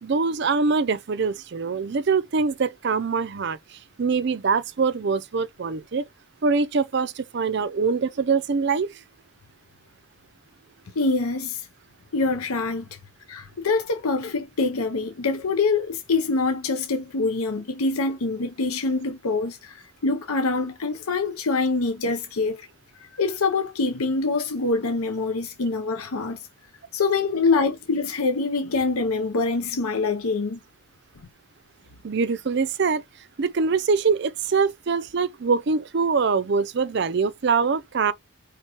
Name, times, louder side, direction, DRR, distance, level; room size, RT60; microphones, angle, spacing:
voice 1, 0.0-6.0 6.4-9.0 32.0-33.0 33.4-38.1, right 5 dB, 50° right, 0.4 m, -24 dB
voice 2, 11.0-11.7 12.1-12.9 13.3-22.7 22.9-26.5 26.9-30.6, left 3 dB, 90° left, 0.7 m, -25 dB
4.7 x 3.5 x 2.9 m
head